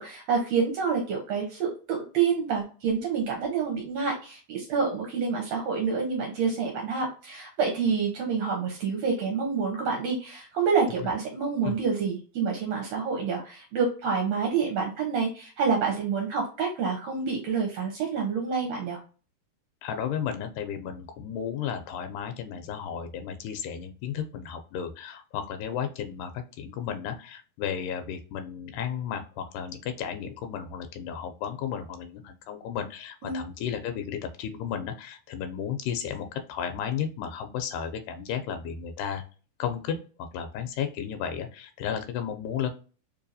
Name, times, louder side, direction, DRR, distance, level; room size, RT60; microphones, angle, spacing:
voice 1, 0.0-19.0 33.2-33.4, right 5 dB, 70° right, 1 dB, 1.8 m, -28 dB
voice 2, 19.8-39.2 39.6-42.7, left 8 dB, 90° left, 7 dB, 2.1 m, -33 dB
4.6 x 2.7 x 2.5 m, 0.36 s
omnidirectional pair, 3.5 m